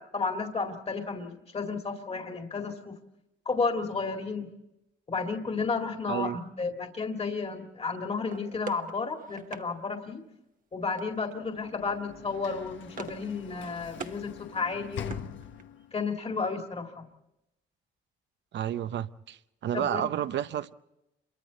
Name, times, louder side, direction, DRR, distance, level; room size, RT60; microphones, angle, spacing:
voice 1, 0.0-2.9 3.5-4.5 5.1-10.2 10.7-15.1 15.9-17.0 19.7-20.1, left 4 dB, 30° left, 2.1 m, -32 dB
sound 1, 8.3-9.7 11.0-11.4 11.7-11.9 12.2-13.3 13.6-14.2 14.6-15.8, right 6 dB, 45° right, 1.2 m, -44 dB
Sliding door / Slam, 11.3-16.0, left 8 dB, 70° left, 1.2 m, -43 dB
voice 2, 18.5-20.7, right 10 dB, 65° right, 0.7 m, -31 dB
27.5 x 23.5 x 4.1 m
cardioid pair, 90°, 20 cm